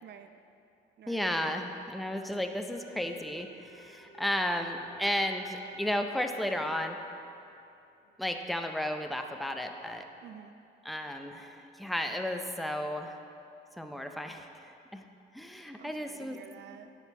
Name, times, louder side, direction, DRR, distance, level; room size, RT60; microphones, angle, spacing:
voice 1, 0.0-0.4 1.0-1.3 10.2-10.6 15.7-16.9, right 8 dB, 60° right, 8 dB, 0.6 m, -50 dB
voice 2, 1.1-7.0 8.2-10.0 10.8-13.2 13.8-15.1 15.3-16.4, left 1 dB, ahead, 5 dB, 0.5 m, -33 dB
sound 1, 2.7-8.8, right 1 dB, 70° left, 1.1 m, -56 dB
9.7 x 4.4 x 5.4 m, 2.7 s
cardioid pair, 90°, 20 cm